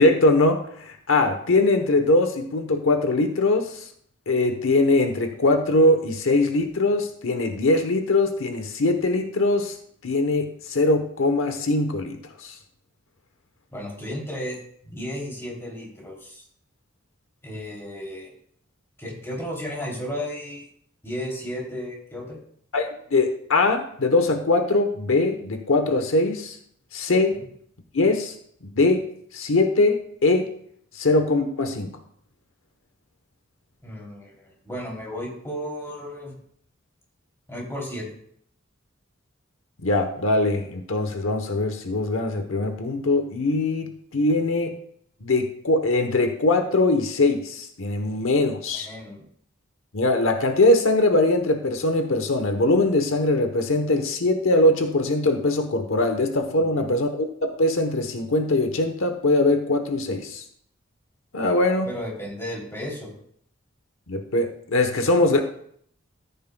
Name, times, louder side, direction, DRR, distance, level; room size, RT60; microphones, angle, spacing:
voice 1, 0.0-3.8 4.3-9.7 10.0-12.6 22.7-26.6 26.9-27.4 27.9-28.3 28.8-30.5 30.9-31.9 39.8-44.8 45.2-48.9 49.9-60.4 61.3-61.9 64.1-65.4, left 2 dB, 85° left, 6 dB, 1.0 m, -22 dB
voice 2, 13.7-14.6 14.8-16.4 17.4-18.3 19.0-20.6 21.0-22.4 27.3-27.4 33.8-36.4 37.5-38.0 48.7-49.2 56.7-56.9 61.6-63.2 65.2-65.4, equal, 15° left, -3 dB, 3.1 m, -34 dB
14.0 x 9.3 x 2.3 m, 0.63 s
head